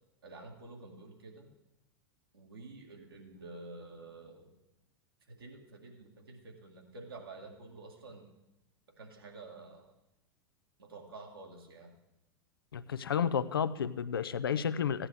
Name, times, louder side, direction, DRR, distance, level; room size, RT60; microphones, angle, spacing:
voice 1, 0.2-1.5 2.3-4.5 5.3-8.3 9.0-9.9 10.8-11.9, right 3 dB, 75° right, 0 dB, 2.1 m, -49 dB
voice 2, 12.7-15.1, left 7 dB, 70° left, 14 dB, 0.5 m, -31 dB
16.0 x 9.8 x 3.6 m, 0.90 s
figure-of-eight pair, 85°, 12 cm